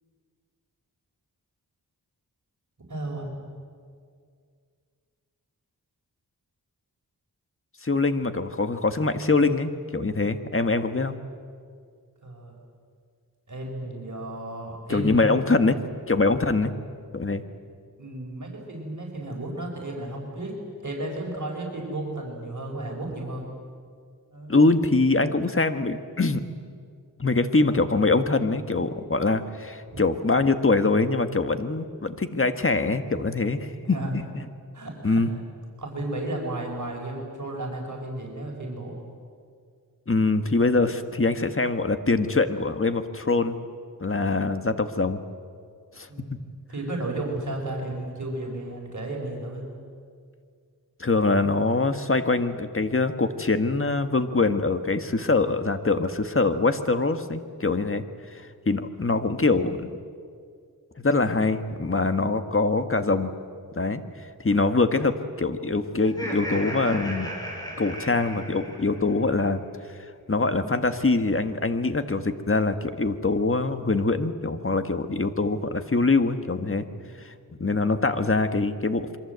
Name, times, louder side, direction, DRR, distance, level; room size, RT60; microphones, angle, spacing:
voice 1, 2.9-3.4 12.2-12.5 13.5-15.4 18.0-23.5 24.3-24.5 29.9-30.0 33.8-34.1 34.7-35.2 35.8-39.0 46.1-46.3 46.7-49.7 76.7-77.1, right 1 dB, 50° right, 0 dB, 5.4 m, -33 dB
voice 2, 7.8-11.1 14.9-15.8 16.1-16.7 17.1-17.4 24.5-26.4 27.2-34.5 35.0-35.3 40.1-43.6 44.0-45.2 46.0-46.4 51.0-58.0 58.3-59.9 61.0-63.3 63.8-64.0 64.4-67.3 67.8-69.6 70.3-76.9 77.2-77.3 77.6-79.2, left 3 dB, 35° left, 9 dB, 1.6 m, -24 dB
Laughter, 66.0-69.2, equal, 10° left, 7.3 m, -35 dB
27.0 x 23.5 x 8.2 m, 2.2 s
wide cardioid pair, 70°, 38 cm